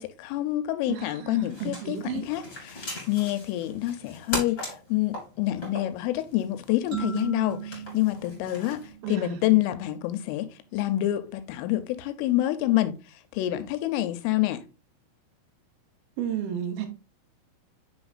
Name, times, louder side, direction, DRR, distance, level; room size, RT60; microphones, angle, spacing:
voice 1, 0.0-2.0 2.3-2.4 2.7-14.6, left 15 dB, 85° left, 3.2 m, -27 dB
voice 2, 0.9-2.3 9.0-9.6 16.2-16.9, right 9 dB, 80° right, 2.1 m, -33 dB
sound 1, 1.4-8.9, left 1 dB, 15° left, 2.2 m, -40 dB
sound 2, 6.9-9.6, right 9 dB, 60° right, 2.4 m, -37 dB
7.8 x 5.6 x 2.4 m
omnidirectional pair, 5.6 m